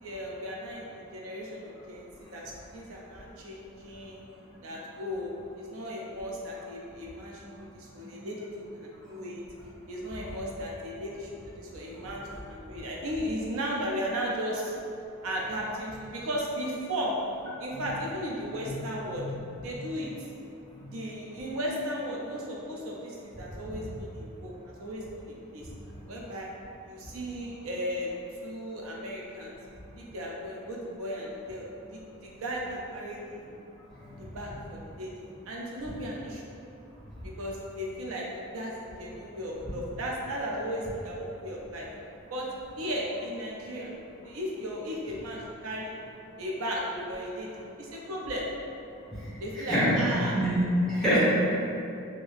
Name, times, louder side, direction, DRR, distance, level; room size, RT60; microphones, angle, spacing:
voice 1, 0.0-4.2 4.6-5.3 5.6-8.5 8.7-9.4 9.9-14.7 15.2-17.1 17.6-19.2 19.6-20.1 20.9-25.6 26.1-26.5 26.9-29.6 30.0-33.4 34.2-35.1 35.5-36.4 37.2-38.3 38.5-41.9 42.3-42.5 42.8-43.9 44.2-46.0 46.4-47.5 47.8-48.5 49.4-50.3, equal, 75° right, -3 dB, 0.5 m, -36 dB
voice 2, 49.1-50.0 50.3-51.2, equal, 5° left, -11 dB, 0.9 m, -27 dB
2.7 x 2.6 x 3.4 m, 2.6 s
head